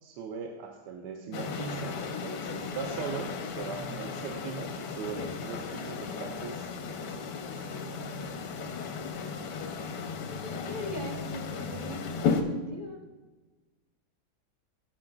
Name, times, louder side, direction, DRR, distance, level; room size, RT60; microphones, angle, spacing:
voice 1, 0.0-7.6, right 6 dB, 80° right, 2 dB, 1.3 m, -40 dB
sound 1, 1.3-12.4, left 5 dB, 75° left, 1.3 m, -35 dB
voice 2, 10.2-13.0, equal, 35° right, 0 dB, 0.8 m, -41 dB
11.5 x 7.1 x 2.3 m, 1.2 s
omnidirectional pair, 1.9 m